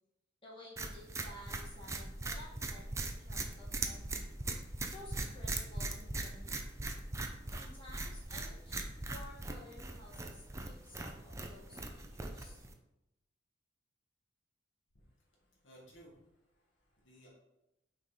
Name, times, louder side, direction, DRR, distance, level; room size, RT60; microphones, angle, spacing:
voice 1, 0.4-4.3 4.9-6.8 7.5-12.6, left 1 dB, 30° left, -6 dB, 1.9 m, -54 dB
sound 1, 0.8-12.7, right 2 dB, 15° right, 0.5 m, -40 dB
voice 2, 15.4-16.2 16.5-17.3, right 1 dB, 75° left, -3 dB, 1.9 m, -59 dB
6.2 x 4.1 x 4.3 m, 0.92 s
head